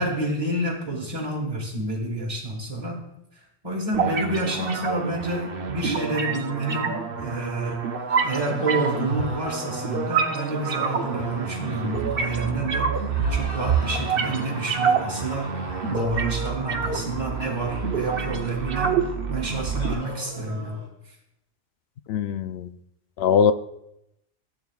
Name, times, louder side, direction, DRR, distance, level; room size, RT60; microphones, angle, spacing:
voice 1, 0.0-3.1 3.6-7.8 8.2-13.0 13.3-15.5 15.9-19.0 19.3-20.8, right 2 dB, 30° right, -5 dB, 1.5 m, -29 dB
sound 1, 3.9-19.9, right 6 dB, 55° right, 0.9 m, -27 dB
sound 2, 8.1-12.7 13.1-18.9 19.5-20.9, equal, 50° left, 2.8 m, -42 dB
voice 2, 22.1-22.8 23.2-23.5, left 7 dB, 65° left, 12 dB, 0.7 m, -21 dB
15.0 x 8.1 x 2.3 m, 0.83 s
omnidirectional pair, 1.3 m